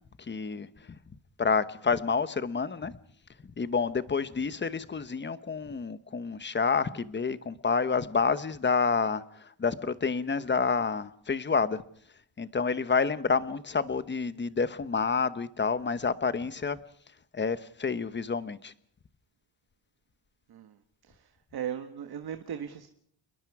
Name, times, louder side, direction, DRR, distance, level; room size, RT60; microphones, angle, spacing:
voice 1, 0.2-0.7 1.4-2.9 3.6-11.8 12.4-16.8 17.3-18.7, left 5 dB, 25° left, 14 dB, 1.1 m, -29 dB
voice 2, 21.1-22.9, right 9 dB, 55° right, 8 dB, 1.6 m, -38 dB
28.0 x 21.5 x 4.8 m, 0.64 s
cardioid pair, 125°, 44 cm